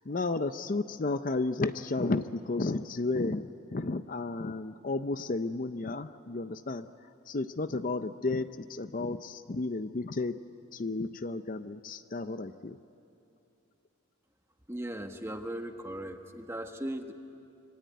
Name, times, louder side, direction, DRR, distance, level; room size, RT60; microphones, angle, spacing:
voice 1, 0.1-6.9 7.3-10.4 10.7-12.8, left 3 dB, 40° left, 11 dB, 0.5 m, -32 dB
voice 2, 14.7-17.1, right 1 dB, 10° right, 5 dB, 1.2 m, -38 dB
25.5 x 24.5 x 9.4 m, 2.8 s
head